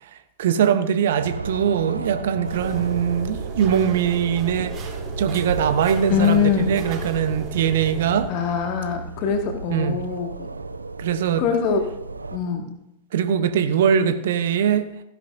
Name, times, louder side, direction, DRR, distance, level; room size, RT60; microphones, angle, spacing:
voice 1, 0.1-4.9 5.2-8.3 9.7-10.0 11.0-11.4 13.1-14.9, right 8 dB, 60° right, 10 dB, 0.9 m, -22 dB
sound 1, 1.1-12.4, right 3 dB, 80° right, 0.6 m, -34 dB
sound 2, 2.4-8.2, right 3 dB, 30° right, 3.6 m, -35 dB
voice 2, 6.1-6.8 8.3-10.5 11.4-11.8 12.3-12.7, left 7 dB, 45° left, 4 dB, 2.0 m, -23 dB
15.5 x 10.5 x 2.7 m, 0.79 s
figure-of-eight pair, 90°, 0 cm